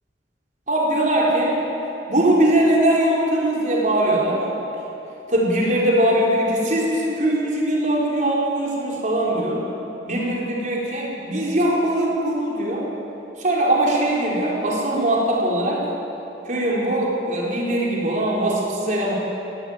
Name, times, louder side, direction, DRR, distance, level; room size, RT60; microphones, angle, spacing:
voice 1, 0.7-1.6 2.1-4.4 5.3-9.6 10.0-12.9 13.4-15.8 16.5-19.1, right 1 dB, 45° right, -3 dB, 4.6 m, -21 dB
20.0 x 16.5 x 8.9 m, 3.0 s
head